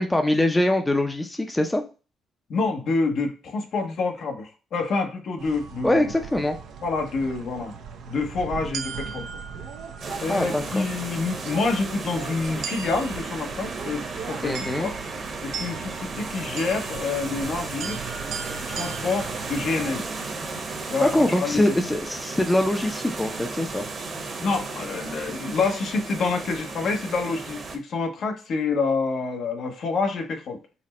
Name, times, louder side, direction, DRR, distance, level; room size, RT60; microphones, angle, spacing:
voice 1, 0.0-1.8 5.8-6.6 10.1-10.8 14.4-14.9 21.0-23.9, left 1 dB, 10° left, 5 dB, 0.6 m, -23 dB
voice 2, 2.5-6.0 6.8-7.7 8.1-9.3 10.2-14.9 15.4-18.0 18.5-20.1 20.9-21.6 24.4-30.6, left 4 dB, 65° left, 4 dB, 0.9 m, -27 dB
sound 1, 5.4-19.9, right 6 dB, 75° right, 0.6 m, -38 dB
sound 2, 10.0-27.8, right 3 dB, 45° right, 1.0 m, -34 dB
4.1 x 2.1 x 4.2 m, 0.33 s
cardioid pair, 90°, 0 cm